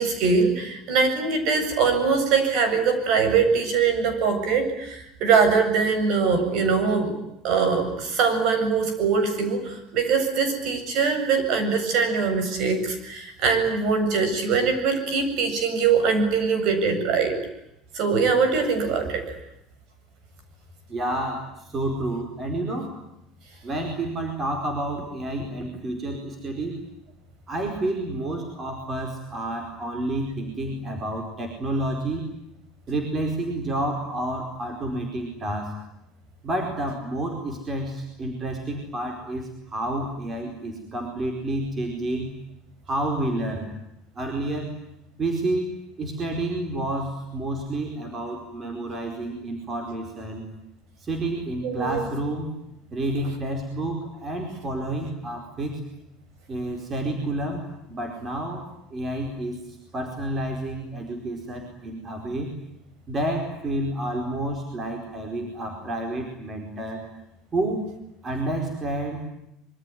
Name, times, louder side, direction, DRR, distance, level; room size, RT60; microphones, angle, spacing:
voice 1, 0.0-7.1 7.4-17.4 17.9-19.2 51.6-52.0, right 5 dB, 45° right, 9 dB, 7.6 m, -22 dB
voice 2, 20.9-23.0 23.6-26.8 27.5-32.3 32.9-35.7 36.4-42.3 42.9-43.7 44.1-44.7 45.2-50.5 51.0-52.5 52.9-55.8 56.5-58.6 58.9-62.5 63.1-67.0 67.5-67.9 68.2-69.2, right 1 dB, 20° right, 3 dB, 4.6 m, -29 dB
26.5 x 24.0 x 9.3 m, 0.81 s
cardioid pair, 180°, 0 cm